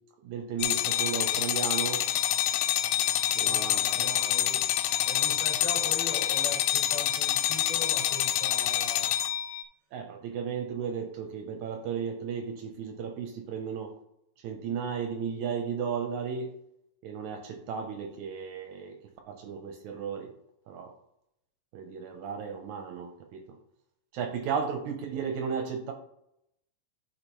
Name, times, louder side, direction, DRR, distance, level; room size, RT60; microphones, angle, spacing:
voice 1, 0.2-2.0 3.3-4.1 9.9-13.9 14.4-16.5 17.0-19.0 19.3-20.3 20.7-20.9 21.7-23.6 24.1-25.9, right 6 dB, 75° right, 4 dB, 1.9 m, -34 dB
sound 1, 0.6-9.6, left 13 dB, 85° left, 2.1 m, -27 dB
voice 2, 3.4-4.7 5.1-9.1, left 3 dB, 65° left, -3 dB, 3.6 m, -39 dB
12.0 x 4.3 x 3.1 m, 0.78 s
omnidirectional pair, 3.9 m